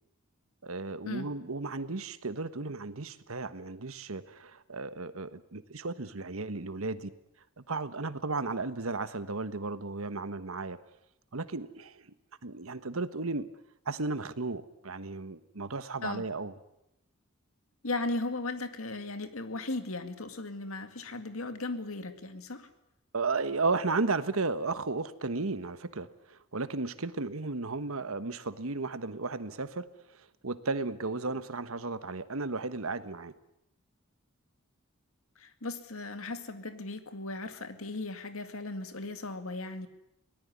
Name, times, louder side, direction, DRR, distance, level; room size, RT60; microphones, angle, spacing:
voice 1, 0.6-7.1 7.7-10.8 11.3-12.1 12.4-13.5 13.8-16.5 23.1-29.9 30.1-33.3, right 3 dB, 80° right, 12 dB, 1.3 m, -34 dB
voice 2, 17.8-22.7 35.4-39.9, left 2 dB, 85° left, 9 dB, 2.1 m, -37 dB
23.0 x 19.0 x 9.7 m, 0.85 s
head